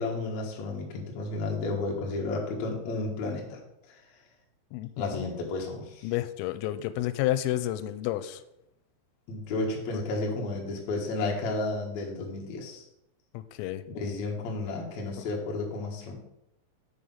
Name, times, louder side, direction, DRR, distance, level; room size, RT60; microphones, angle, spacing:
voice 1, 0.0-3.6 3.9-4.0 5.0-6.1 9.3-12.8 13.9-16.2, left 3 dB, 65° left, -1 dB, 1.7 m, -32 dB
voice 2, 4.7-5.2 6.0-8.4 9.9-10.0 13.3-13.8 15.2-15.3, left 14 dB, 90° left, 13 dB, 3.2 m, -31 dB
6.9 x 6.4 x 5.4 m, 0.82 s
omnidirectional pair, 5.8 m